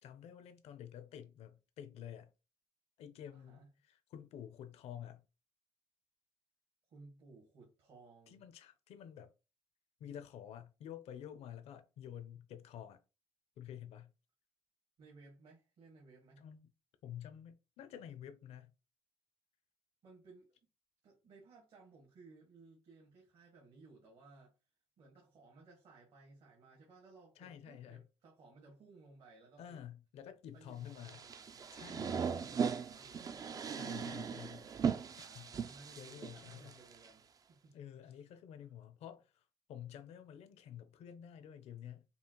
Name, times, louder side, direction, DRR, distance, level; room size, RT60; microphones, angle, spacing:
voice 1, 0.0-2.3 3.0-5.2 8.3-9.3 10.0-13.0 13.6-14.1 16.4-16.7 17.0-18.7 27.4-28.0 29.6-31.2 31.7-32.1 33.7-34.7 35.2-35.5 36.0-36.8 37.7-39.4 39.7-42.0, left 10 dB, 75° left, 0.7 m, -50 dB
voice 2, 3.3-3.7 6.9-8.4 15.0-16.4 20.0-20.5 21.0-24.5 25.0-29.8 30.5-33.5 35.2-37.8 38.0-38.2, right 3 dB, 65° right, 1.8 m, -60 dB
sound 1, 31.0-37.1, right 6 dB, 35° right, 0.4 m, -39 dB
5.4 x 2.4 x 2.9 m
cardioid pair, 110°, 11 cm